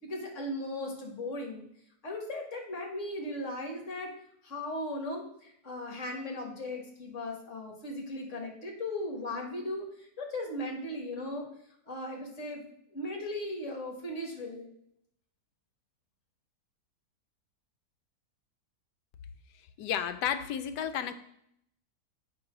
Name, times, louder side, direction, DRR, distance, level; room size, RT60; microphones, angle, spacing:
voice 1, 0.0-1.7 2.0-4.1 4.4-11.5 11.9-12.6 12.9-14.7, left 1 dB, 45° left, 1 dB, 1.8 m, -37 dB
voice 2, 19.8-21.1, left 9 dB, 85° left, 10 dB, 1.2 m, -32 dB
8.0 x 3.8 x 5.9 m, 0.72 s
omnidirectional pair, 1.8 m